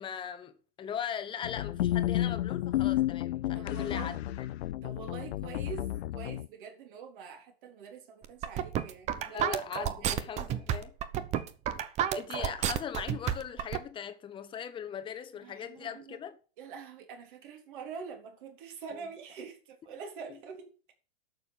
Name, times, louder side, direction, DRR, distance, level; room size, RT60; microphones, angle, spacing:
voice 1, 0.0-4.1 9.2-10.9 12.1-16.4 18.9-19.1, left 8 dB, 15° left, 1.2 m, -39 dB
sound 1, 1.4-6.5, left 14 dB, 80° left, 0.6 m, -31 dB
voice 2, 3.5-4.2 4.8-9.5 10.0-10.3 15.4-16.2 16.6-20.9, right 6 dB, 55° right, 3.8 m, -45 dB
sound 2, 8.2-13.8, right 10 dB, 20° right, 0.8 m, -31 dB
11.5 x 6.7 x 7.4 m
supercardioid pair, 160°, 31 cm